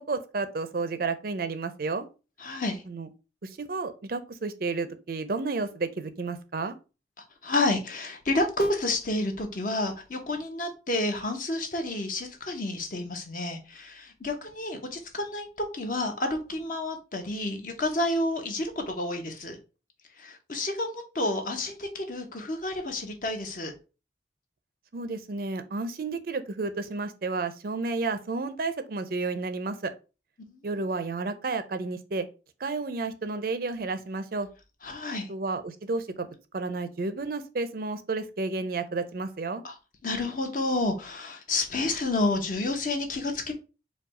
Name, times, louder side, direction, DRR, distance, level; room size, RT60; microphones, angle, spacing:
voice 1, 0.1-2.1 2.9-3.1 3.4-6.7 24.9-29.9 30.6-32.3 32.6-34.5 35.3-36.3 36.5-39.6, right 3 dB, 50° right, 0.5 m, -31 dB
voice 2, 2.4-2.8 7.4-15.5 15.7-19.6 20.2-23.7 30.4-30.6 34.8-35.3 39.6-39.7 40.0-43.5, left 2 dB, 50° left, 1.0 m, -30 dB
4.7 x 2.3 x 4.7 m
head